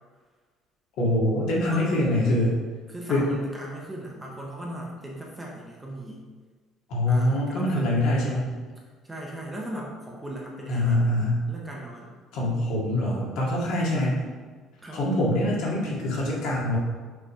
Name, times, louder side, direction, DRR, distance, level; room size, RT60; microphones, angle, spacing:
voice 1, 1.0-2.6 3.1-3.3 6.9-8.5 10.7-11.5 12.3-14.2 14.9-16.8, left 1 dB, 65° left, -5 dB, 2.0 m, -24 dB
voice 2, 1.6-1.9 2.9-6.2 7.1-7.9 9.0-11.1 11.5-12.1 14.8-15.0, right 1 dB, 5° right, -2 dB, 0.8 m, -38 dB
6.0 x 3.3 x 5.5 m, 1.5 s
cardioid pair, 180°, 0 cm